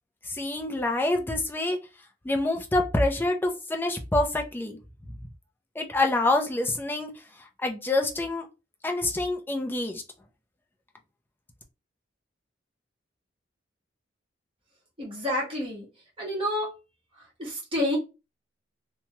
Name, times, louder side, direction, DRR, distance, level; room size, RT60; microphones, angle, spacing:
voice 1, 0.3-1.8 2.2-4.8 5.8-7.1 7.6-8.4 8.8-10.0, left 2 dB, 10° left, 0.4 m, -26 dB
voice 2, 15.0-15.9 16.2-16.7 17.4-18.0, left 1 dB, 30° right, 1.4 m, -29 dB
2.7 x 2.2 x 3.0 m
head